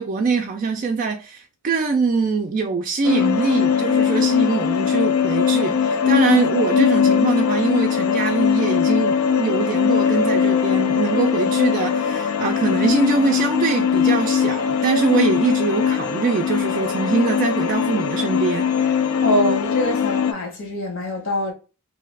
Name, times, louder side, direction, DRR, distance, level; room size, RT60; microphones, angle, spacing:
voice 1, 0.0-19.0, right 4 dB, 40° right, 0.3 m, -23 dB
sound 1, 3.0-20.3, left 7 dB, 80° left, 0.4 m, -20 dB
voice 2, 19.2-21.5, equal, 65° left, 1.1 m, -24 dB
2.7 x 2.3 x 3.2 m
head